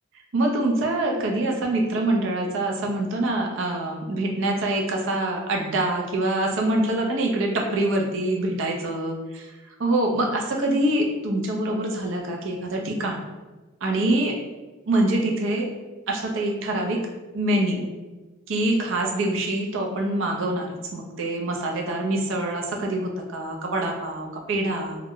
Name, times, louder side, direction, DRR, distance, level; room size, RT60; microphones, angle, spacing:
voice 1, 0.3-9.5 9.8-13.2 13.8-14.4 14.9-15.7 16.1-17.0 17.3-17.9 18.5-25.0, right 1 dB, 70° right, 0 dB, 0.5 m, -25 dB
2.2 x 2.0 x 3.6 m, 1.2 s
head